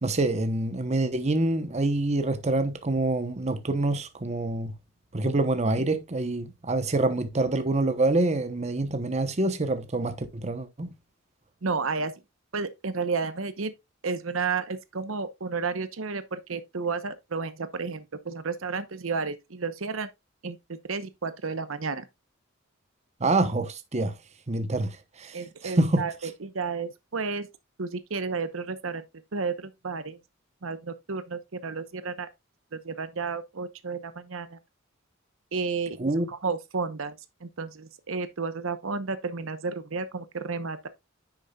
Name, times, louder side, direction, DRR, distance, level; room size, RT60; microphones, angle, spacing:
voice 1, 0.0-4.7 5.1-10.9 23.2-24.1 24.5-26.1 36.0-36.3, right 2 dB, 35° right, 0.9 m, -26 dB
voice 2, 11.6-12.1 12.5-13.7 14.0-20.1 20.4-20.6 20.9-22.0 25.3-27.5 27.8-29.0 29.3-30.2 30.6-32.3 32.7-34.6 35.5-36.0 36.3-37.1 37.4-40.9, right 4 dB, 75° right, 0.9 m, -32 dB
10.0 x 6.5 x 2.3 m
head